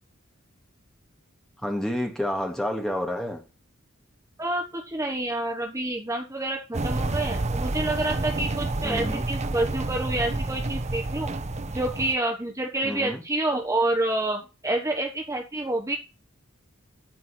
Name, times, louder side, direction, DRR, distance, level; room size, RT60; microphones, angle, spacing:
voice 1, 1.6-3.5 8.8-9.3 12.8-13.2, left 1 dB, ahead, 2.1 m, -29 dB
voice 2, 4.4-11.3 11.7-16.0, right 2 dB, 15° right, 1.3 m, -28 dB
sound 1, 6.7-12.1, right 2 dB, 35° right, 0.8 m, -29 dB
13.0 x 4.7 x 5.9 m
head